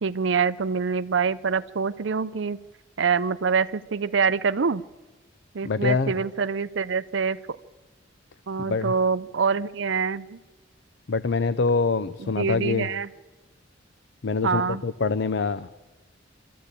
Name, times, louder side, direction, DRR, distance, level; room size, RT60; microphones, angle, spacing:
voice 1, 0.0-2.6 3.0-4.8 5.5-7.4 8.5-10.4 12.2-13.1 14.4-14.8, right 5 dB, 65° right, 13 dB, 0.5 m, -25 dB
voice 2, 5.6-6.2 8.7-8.9 11.1-12.9 14.2-15.7, left 4 dB, 60° left, 14 dB, 0.5 m, -25 dB
24.0 x 13.5 x 8.3 m, 1.2 s
head